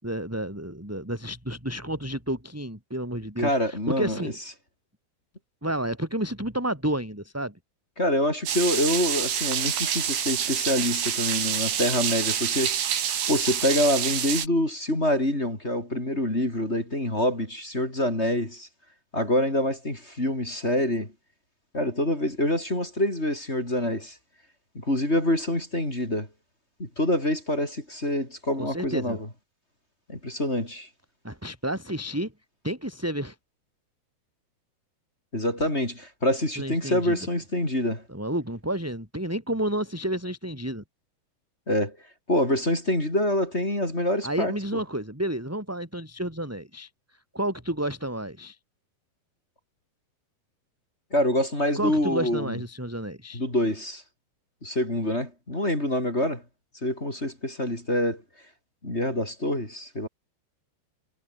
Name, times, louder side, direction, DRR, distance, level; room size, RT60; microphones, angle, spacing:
voice 1, 0.0-4.4 5.6-7.6 28.6-29.2 31.2-32.3 32.6-33.4 35.6-35.7 36.6-37.2 38.1-40.8 44.2-46.9 47.3-48.6 51.8-53.4, right 1 dB, 5° right, 5.9 m, -30 dB
voice 2, 3.4-4.2 8.0-12.8 13.3-18.7 19.1-21.1 21.7-24.1 24.7-26.3 26.8-29.2 30.1-30.9 35.3-38.0 41.7-42.0 42.3-44.5 51.1-52.6 53.3-54.0 54.6-56.4 56.8-58.2 58.8-60.1, left 1 dB, 15° left, 5.1 m, -26 dB
sound 1, 8.5-14.5, right 9 dB, 85° right, 5.1 m, -27 dB
omnidirectional pair, 4.7 m